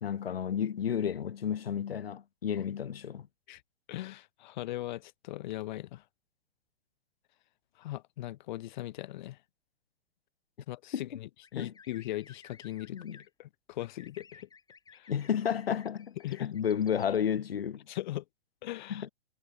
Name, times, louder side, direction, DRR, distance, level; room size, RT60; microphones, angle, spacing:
voice 1, 0.0-3.3 10.9-11.2 11.5-11.7 12.9-13.2 15.1-17.9 18.9-19.1, left 8 dB, 70° left, 1.1 m, -32 dB
voice 2, 3.9-6.0 7.8-9.4 10.7-13.0 13.4-14.5 14.9-15.1 16.2-16.5 17.9-18.2 18.6-19.1, left 15 dB, 50° left, 2.1 m, -39 dB
sound 1, 11.4-13.3 13.8-17.2, left 5 dB, 10° left, 7.6 m, -57 dB
figure-of-eight pair, 110°, 31 cm